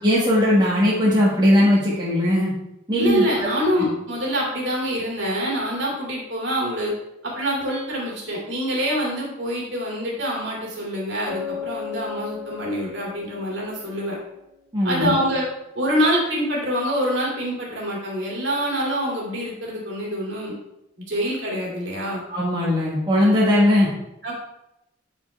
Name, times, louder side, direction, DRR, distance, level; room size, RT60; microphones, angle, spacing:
voice 1, 0.0-2.5 2.9-3.5 14.7-15.2 22.3-23.9, left 1 dB, 20° right, -6 dB, 1.4 m, -19 dB
voice 2, 3.0-6.9 7.2-14.2 14.8-15.4 15.7-20.5 21.1-22.2 24.2-24.3, equal, 70° right, -3 dB, 2.5 m, -25 dB
Bass guitar, 11.3-14.9, left 8 dB, ahead, 2.3 m, -37 dB
9.5 x 4.6 x 3.2 m, 0.87 s
head